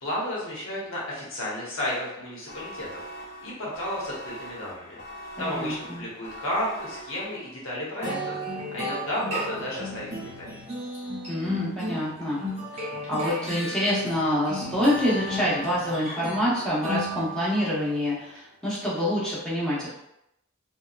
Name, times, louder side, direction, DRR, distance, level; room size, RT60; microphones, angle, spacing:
voice 1, 0.0-3.1 3.4-5.0 5.4-10.5, left 1 dB, 70° left, -5 dB, 0.9 m, -32 dB
sound 1, 2.5-7.7, equal, 55° left, 0.4 m, -42 dB
voice 2, 5.4-6.0 11.3-12.4 13.1-19.9, equal, 5° left, -8 dB, 0.8 m, -26 dB
sound 2, 8.0-17.7, equal, 30° right, 0.8 m, -34 dB
2.7 x 2.2 x 2.4 m, 0.83 s
head